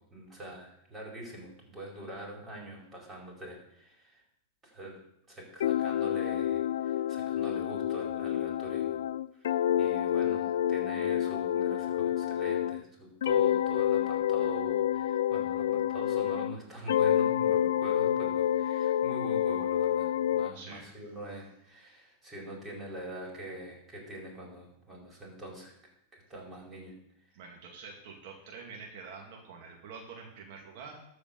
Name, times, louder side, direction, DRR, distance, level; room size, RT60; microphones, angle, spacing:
voice 1, 0.0-4.2 4.6-5.0 5.3-9.0 9.3-25.8 26.1-26.9, right 1 dB, 20° right, -1 dB, 4.8 m, -44 dB
sound 1, 5.6-12.8 13.2-16.6 16.9-20.5, left 10 dB, 80° left, 0.3 m, -28 dB
voice 2, 20.5-21.0 27.3-31.0, right 5 dB, 60° right, 0 dB, 2.1 m, -46 dB
13.0 x 5.0 x 7.0 m, 0.75 s
hypercardioid pair, 120°, 0 cm